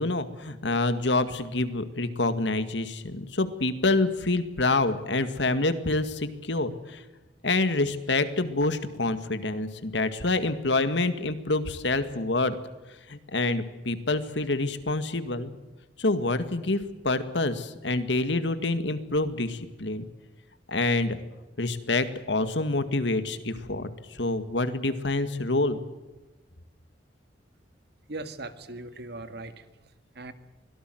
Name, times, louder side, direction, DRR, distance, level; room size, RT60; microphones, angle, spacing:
voice 1, 0.0-7.0 7.4-12.5 13.1-15.5 16.0-20.0 20.7-21.2 21.6-25.8, left 2 dB, 70° left, 11 dB, 2.0 m, -27 dB
voice 2, 28.1-29.7 30.1-30.3, right 2 dB, 65° right, 10 dB, 2.0 m, -39 dB
24.5 x 18.0 x 7.8 m, 1.1 s
head